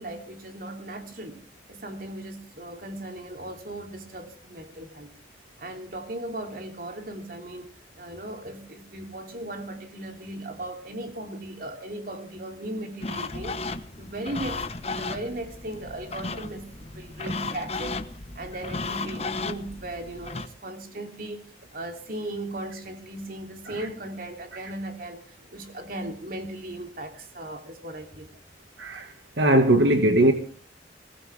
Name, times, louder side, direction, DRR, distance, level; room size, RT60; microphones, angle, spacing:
voice 1, 0.0-1.4 1.7-5.1 5.6-13.6 14.0-18.0 18.3-21.5 21.7-25.2 25.5-28.3, right 1 dB, 50° right, 3.1 m, -37 dB
sound 1, 13.0-20.5, left 3 dB, 35° left, 1.1 m, -34 dB
voice 2, 28.8-30.3, right 1 dB, 75° right, 1.8 m, -20 dB
21.5 x 18.5 x 3.5 m
head